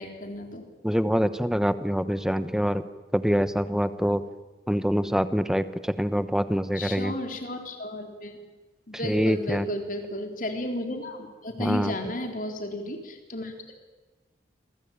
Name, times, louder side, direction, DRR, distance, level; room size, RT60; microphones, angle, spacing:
voice 1, 0.0-0.7 6.8-8.4 8.9-13.8, left 1 dB, 45° left, 4 dB, 4.0 m, -33 dB
voice 2, 0.8-2.8 3.1-4.2 4.7-7.1 9.0-9.7 11.6-11.9, equal, 5° right, 12 dB, 1.1 m, -25 dB
28.0 x 23.0 x 9.0 m, 1.2 s
head